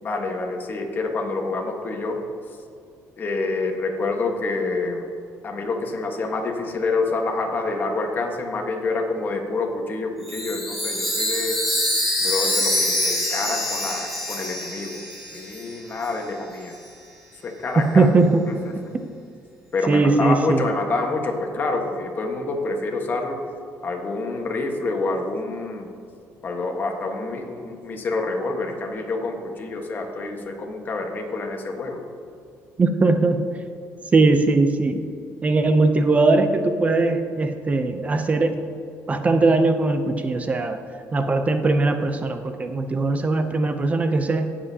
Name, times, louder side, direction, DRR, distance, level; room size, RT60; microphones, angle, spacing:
voice 1, 0.0-2.2 2.5-2.6 3.2-5.1 5.4-11.6 12.2-15.0 15.3-16.8 17.4-18.1 18.5-18.7 19.7-23.4 23.8-25.9 26.4-32.0, left 3 dB, 35° left, 2 dB, 1.4 m, -27 dB
Chime, 10.2-15.8, left 1 dB, ahead, 2.5 m, -25 dB
voice 2, 17.9-18.4 19.9-20.6 32.8-33.4 34.1-35.0 35.4-38.6 39.1-40.8 41.1-44.5, right 3 dB, 25° right, 8 dB, 0.6 m, -20 dB
17.5 x 7.4 x 2.8 m, 2.4 s
cardioid pair, 130°, 6 cm